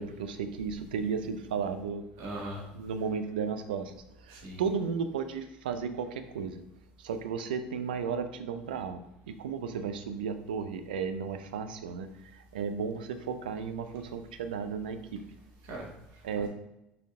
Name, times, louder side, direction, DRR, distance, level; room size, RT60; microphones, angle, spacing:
voice 1, 0.0-2.0 2.7-6.6 7.0-9.0 9.3-15.2 16.2-16.5, right 6 dB, 85° right, 10 dB, 0.5 m, -34 dB
voice 2, 2.2-2.6 4.3-4.6 15.6-16.5, right 1 dB, 65° right, -2 dB, 2.0 m, -41 dB
6.4 x 4.3 x 3.6 m, 0.86 s
hypercardioid pair, 70°, 5 cm